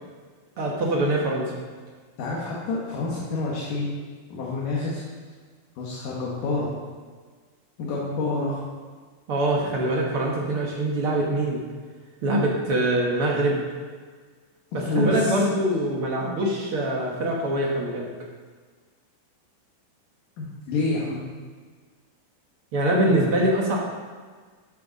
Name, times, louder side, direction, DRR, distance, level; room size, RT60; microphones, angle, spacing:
voice 1, 0.6-1.5 9.3-11.6 12.2-13.6 14.7-18.1 22.7-23.8, right 1 dB, 55° right, -2 dB, 1.7 m, -23 dB
voice 2, 2.2-3.9 4.3-5.0 5.8-6.7 7.8-8.6 14.7-15.4 20.4-21.2 23.0-23.3, left 3 dB, 70° left, -5 dB, 3.1 m, -28 dB
14.0 x 7.8 x 4.1 m, 1.5 s
omnidirectional pair, 4.1 m